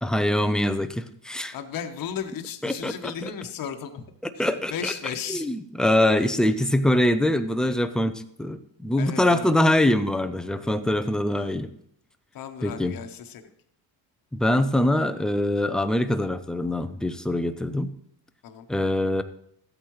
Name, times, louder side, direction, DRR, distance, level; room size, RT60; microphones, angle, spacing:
voice 1, 0.0-1.6 2.6-3.3 4.2-4.9 5.3-11.7 12.6-12.9 14.3-17.9 18.7-19.2, left 1 dB, ahead, 10 dB, 0.3 m, -24 dB
voice 2, 1.5-4.1 4.3-5.5 9.0-9.6 12.3-13.5 18.4-18.7, left 8 dB, 45° left, 6 dB, 1.0 m, -35 dB
14.5 x 8.4 x 3.1 m, 0.71 s
cardioid pair, 125°, 46 cm